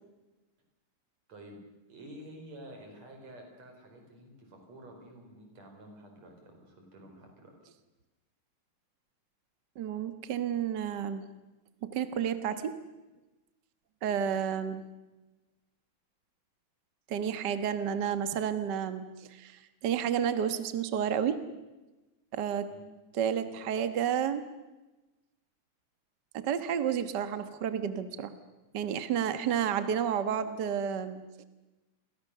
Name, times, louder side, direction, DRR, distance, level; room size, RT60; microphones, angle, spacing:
voice 1, 1.3-1.6 1.9-7.5 22.7-22.9, right 1 dB, 45° right, 3 dB, 6.1 m, -50 dB
voice 2, 9.7-11.2 11.8-12.7 14.0-14.8 17.1-21.4 22.3-22.7 23.2-24.4 26.3-28.3 28.7-31.4, right 8 dB, 70° right, 10 dB, 1.0 m, -31 dB
30.0 x 23.0 x 6.8 m, 1.1 s
omnidirectional pair, 4.1 m